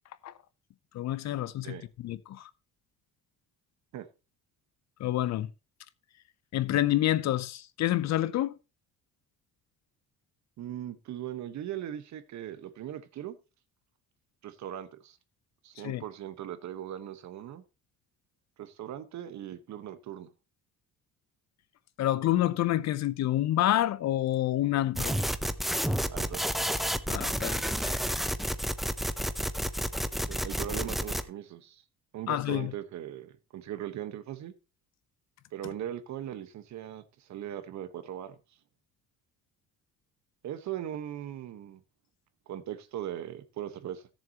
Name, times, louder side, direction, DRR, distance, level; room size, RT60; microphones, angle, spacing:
voice 1, 0.9-2.5 5.0-5.5 6.5-8.5 15.8-16.0 22.0-25.2 27.1-28.0 32.3-32.7, left 13 dB, 55° left, 0.7 m, -28 dB
voice 2, 10.6-13.4 14.4-15.2 15.6-17.6 18.6-20.3 26.1-26.5 30.3-31.8 32.1-34.5 35.5-38.3 40.4-41.8 42.5-44.1, right 11 dB, 55° right, 1.3 m, -39 dB
sound 1, 25.0-31.2, equal, ahead, 0.5 m, -30 dB
17.0 x 7.1 x 2.9 m
cardioid pair, 155°, 33 cm